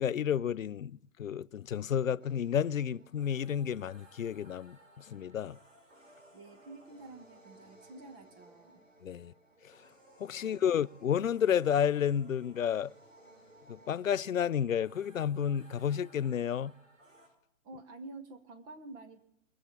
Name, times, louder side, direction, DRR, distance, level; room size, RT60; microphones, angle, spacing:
voice 1, 0.0-5.6 9.0-9.3 9.6-9.7 10.2-12.9 13.7-16.7, left 8 dB, 90° left, 0.5 m, -31 dB
sound 1, 2.2-17.3, right 1 dB, 70° right, 4.9 m, -59 dB
voice 2, 6.3-8.9 10.3-10.7 17.6-19.2, right 2 dB, 10° right, 0.6 m, -49 dB
20.5 x 7.3 x 8.0 m
figure-of-eight pair, 130°, 39 cm